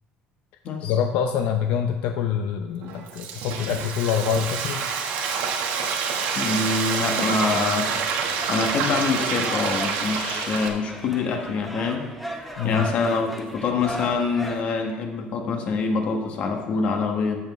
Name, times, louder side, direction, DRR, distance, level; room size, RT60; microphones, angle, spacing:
voice 1, 0.8-4.8 12.6-12.9, left 8 dB, 80° left, 5 dB, 0.5 m, -25 dB
Frying (food), 2.8-10.7, right 6 dB, 85° right, 1.2 m, -27 dB
voice 2, 6.3-7.9 8.5-12.1 12.6-17.4, left 4 dB, 45° left, 4 dB, 1.3 m, -25 dB
sound 1, 7.8-14.6, equal, 5° left, 0.8 m, -37 dB
13.5 x 7.1 x 3.1 m, 1.2 s
cardioid pair, 165°, 3 cm